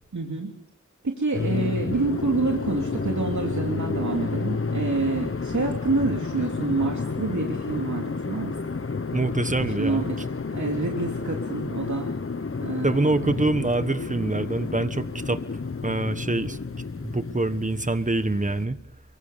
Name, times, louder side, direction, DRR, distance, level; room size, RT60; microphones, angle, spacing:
voice 1, 0.1-0.5 1.0-8.5 9.8-10.0 10.4-12.1 12.6-13.4, right 3 dB, 75° right, 0 dB, 3.1 m, -27 dB
sound 1, 1.3-18.6, left 4 dB, 45° left, 1.0 m, -31 dB
voice 2, 9.1-10.1 12.8-15.4 15.8-16.6 17.0-18.8, right 2 dB, 25° right, 12 dB, 1.3 m, -25 dB
25.0 x 24.0 x 6.9 m, 0.79 s
wide cardioid pair, 60°, 29 cm